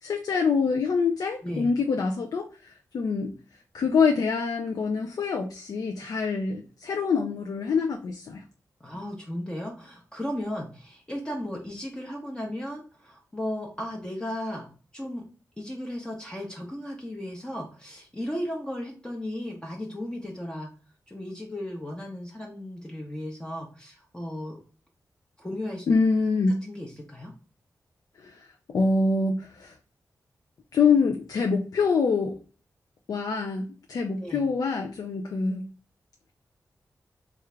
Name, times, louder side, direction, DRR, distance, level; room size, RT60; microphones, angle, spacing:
voice 1, 0.0-3.3 3.7-8.4 25.9-26.6 28.2-28.4 28.7-29.7 30.7-32.4 33.1-35.7, left 4 dB, 70° left, 4 dB, 0.4 m, -25 dB
voice 2, 8.8-14.7 14.9-15.2 15.6-20.7 21.1-24.6 25.4-25.9 26.6-27.3 34.2-34.4, left 1 dB, 10° left, -1 dB, 0.6 m, -35 dB
3.2 x 2.4 x 3.2 m, 0.38 s
wide cardioid pair, 105°, 7 cm